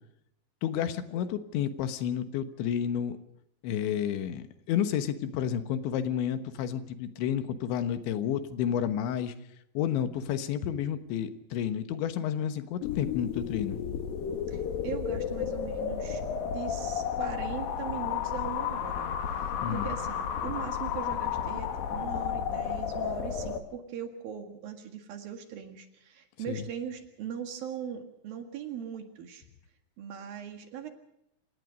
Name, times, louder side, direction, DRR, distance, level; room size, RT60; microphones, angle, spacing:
voice 1, 0.6-3.2 3.6-9.3 9.8-13.8 19.6-19.9 26.5-26.7, left 9 dB, 80° left, 10 dB, 3.5 m, -31 dB
sound 1, 12.8-23.6, left 8 dB, 60° left, 3.0 m, -32 dB
voice 2, 14.5-19.1 19.7-29.4 30.0-30.9, right 8 dB, 60° right, 6 dB, 3.2 m, -40 dB
28.5 x 17.5 x 5.2 m, 0.80 s
omnidirectional pair, 5.3 m